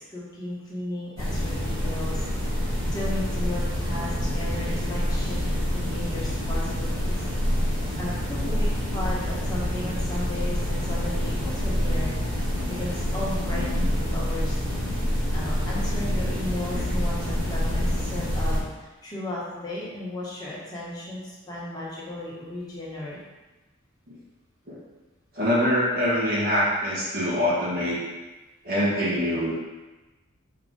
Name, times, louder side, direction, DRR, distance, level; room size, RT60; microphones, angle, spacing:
voice 1, 0.1-5.4 5.7-7.2 8.0-12.1 12.7-13.7 14.0-14.6 15.3-23.2, left 1 dB, 20° left, -7 dB, 1.5 m, -35 dB
sound 1, 1.2-18.6, equal, 65° right, 1.6 m, -27 dB
voice 2, 13.6-13.9 16.7-16.8 24.1-24.2 24.7-24.8 25.3-28.0 28.6-29.5, equal, 45° right, -8 dB, 1.8 m, -24 dB
6.5 x 3.7 x 4.0 m, 1.1 s
head